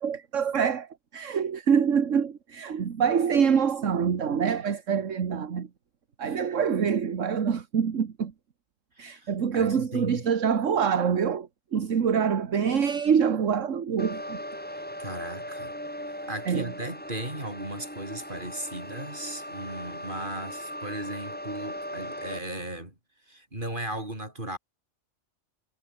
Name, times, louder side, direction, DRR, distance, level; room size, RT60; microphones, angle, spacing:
voice 1, 0.0-5.7 6.2-8.3 9.0-14.4 16.5-16.7, right 7 dB, 65° right, 1.7 m, -25 dB
voice 2, 9.0-10.2 14.7-15.7 16.3-22.9 23.3-24.6, right 1 dB, 40° right, 7.3 m, -37 dB
sound 1, 14.0-22.4, equal, 5° left, 6.3 m, -38 dB
omnidirectional pair, 1.4 m